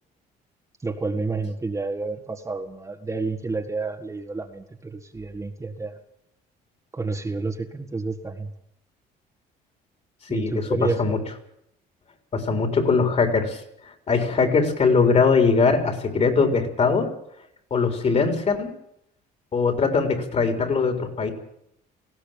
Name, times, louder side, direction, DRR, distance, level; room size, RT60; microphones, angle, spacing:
voice 1, 0.8-5.9 6.9-8.5 10.3-11.0, right 3 dB, 20° right, 3 dB, 1.8 m, -29 dB
voice 2, 10.3-11.2 12.3-13.6 14.1-17.1 17.7-18.7 19.5-21.3, left 4 dB, 40° left, 6 dB, 4.0 m, -21 dB
19.0 x 16.0 x 8.9 m, 0.75 s
cardioid pair, 110°, 17 cm